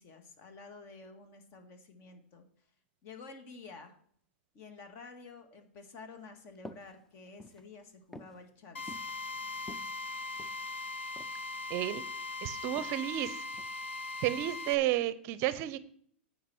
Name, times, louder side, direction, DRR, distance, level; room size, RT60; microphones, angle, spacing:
voice 1, 0.0-2.5 3.0-3.9 4.5-9.1, left 4 dB, 40° left, 6 dB, 1.8 m, -51 dB
sound 1, 6.6-6.9 7.3-7.6 8.1-8.4 8.9-9.1 9.6-10.6 11.2-11.4 11.7-12.2 12.8-13.0 13.6-13.8, left 1 dB, 5° left, 0.5 m, -49 dB
Drill, 8.7-14.7, left 3 dB, 85° left, 0.9 m, -40 dB
voice 2, 11.7-12.0 12.4-13.4 14.2-15.8, right 14 dB, 45° right, 16 dB, 0.6 m, -32 dB
9.4 x 5.0 x 7.0 m, 0.62 s
hypercardioid pair, 115°, 6 cm